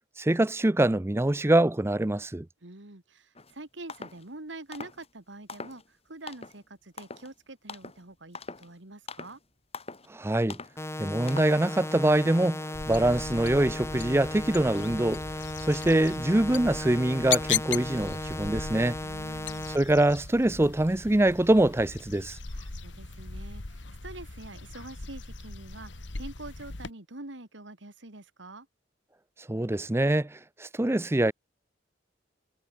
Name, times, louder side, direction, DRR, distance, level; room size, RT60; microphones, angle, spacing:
voice 1, 0.2-2.5 10.1-10.6 11.0-15.2 15.6-19.0 19.7-22.4 29.5-31.3, right 1 dB, 15° right, 0.5 m, -24 dB
voice 2, 2.6-9.4 19.0-19.7 22.5-28.7, right 2 dB, 75° right, 2.4 m, -45 dB
sound 1, 3.3-3.5 3.9-4.2 4.7-5.1 5.5-5.9 6.3-6.6 7.0-7.3 7.7-8.0 8.3-8.7 9.1-9.4 9.7-10.1 10.5-10.8 11.3-11.6, left 4 dB, 35° left, 5.0 m, -42 dB
sound 2, 10.8-19.8, left 1 dB, 15° left, 2.3 m, -36 dB
sound 3, 12.7-26.9, left 7 dB, 70° left, 1.6 m, -38 dB
head